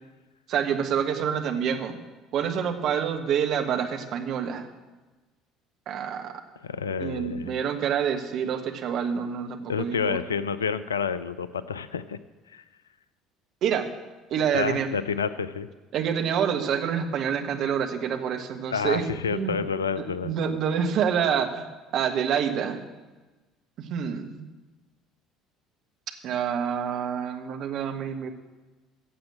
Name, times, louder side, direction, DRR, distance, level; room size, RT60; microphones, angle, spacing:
voice 1, 0.5-2.0 2.3-4.7 5.9-6.3 7.0-10.2 13.6-13.9 14.3-15.0 15.9-19.6 20.0-22.9 23.8-24.4 26.2-28.3, right 7 dB, 50° right, 5 dB, 1.6 m, -27 dB
voice 2, 6.6-7.6 9.7-12.2 12.5-12.6 14.5-15.7 18.7-20.3, left 6 dB, 75° left, 15 dB, 0.5 m, -29 dB
15.5 x 7.5 x 7.7 m, 1.2 s
figure-of-eight pair, 60°, 0 cm